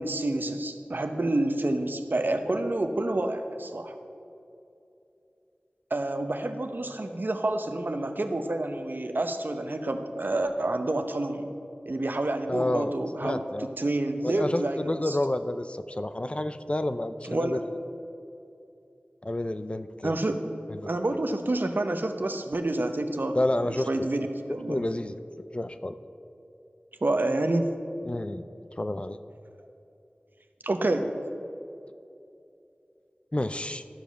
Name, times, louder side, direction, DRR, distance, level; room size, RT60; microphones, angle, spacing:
voice 1, 0.0-3.9 5.9-11.5 11.9-15.2 17.2-17.7 20.0-20.4 20.9-24.8 27.0-27.7 30.6-31.1, right 2 dB, 65° right, 7 dB, 0.8 m, -28 dB
voice 2, 12.5-13.7 14.2-17.6 19.2-20.2 20.7-21.0 23.3-24.1 24.7-26.0 28.1-28.4 28.8-29.2 33.3-33.8, left 1 dB, 35° left, 11 dB, 0.4 m, -30 dB
13.0 x 5.2 x 6.7 m, 2.7 s
wide cardioid pair, 40°, 4 cm